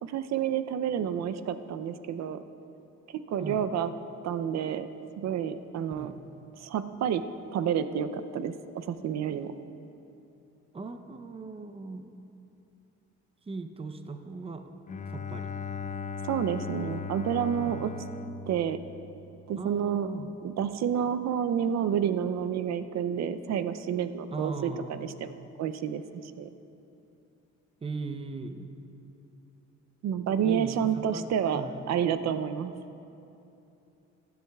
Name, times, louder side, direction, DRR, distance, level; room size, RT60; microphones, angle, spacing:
voice 1, 0.0-2.4 3.3-3.9 4.2-4.9 5.2-6.1 6.6-7.2 7.5-9.5 16.2-17.9 18.5-18.8 19.5-20.1 20.4-26.5 30.0-32.7, right 8 dB, 60° right, 11 dB, 0.5 m, -29 dB
voice 2, 10.7-12.1 13.5-14.6 15.1-15.6 17.7-17.9 19.6-20.4 24.3-25.1 27.8-28.7 30.4-31.8, right 3 dB, 20° right, 7 dB, 0.6 m, -38 dB
Bowed string instrument, 14.9-19.5, left 5 dB, 25° left, 0.4 m, -38 dB
15.5 x 10.5 x 2.3 m, 2.8 s
cardioid pair, 90°, 30 cm